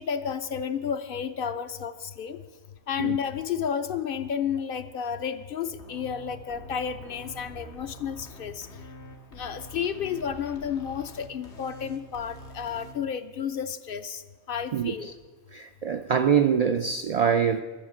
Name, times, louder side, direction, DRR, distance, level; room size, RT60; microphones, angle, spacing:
voice 1, 0.0-2.4 2.9-8.7 9.3-14.2 14.5-15.1, left 7 dB, 60° left, 0.7 m, -31 dB
sound 1, 5.6-12.9, equal, 85° left, 1.5 m, -46 dB
voice 2, 15.5-17.6, right 7 dB, 60° right, 0.4 m, -24 dB
13.0 x 7.1 x 7.6 m
omnidirectional pair, 1.1 m